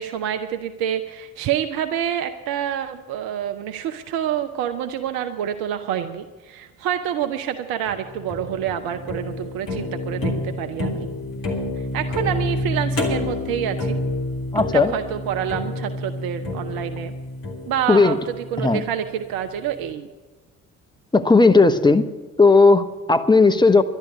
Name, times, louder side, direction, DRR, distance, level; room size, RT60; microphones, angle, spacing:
voice 1, 0.0-11.1 11.9-14.0 14.5-17.1 17.7-20.1, right 10 dB, 60° right, 7 dB, 0.8 m, -27 dB
sound 1, 7.9-19.1, left 1 dB, 55° left, 2.6 m, -29 dB
voice 2, 14.5-14.9 17.9-18.2 18.6-18.8 21.1-22.0 22.4-23.8, left 3 dB, 10° left, 8 dB, 1.0 m, -15 dB
11.5 x 10.5 x 8.1 m, 1.2 s
figure-of-eight pair, 45°, 41 cm